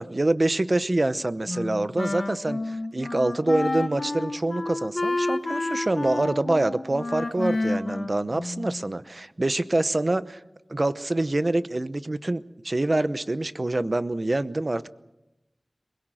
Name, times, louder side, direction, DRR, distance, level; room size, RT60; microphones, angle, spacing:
voice 1, 0.0-10.4 10.7-14.9, right 2 dB, 45° right, 14 dB, 0.8 m, -26 dB
Wind instrument woodwind instrument, 1.5-8.9, left 2 dB, 65° left, 1.7 m, -30 dB
23.0 x 21.5 x 7.6 m, 0.96 s
wide cardioid pair, 55°, 0 cm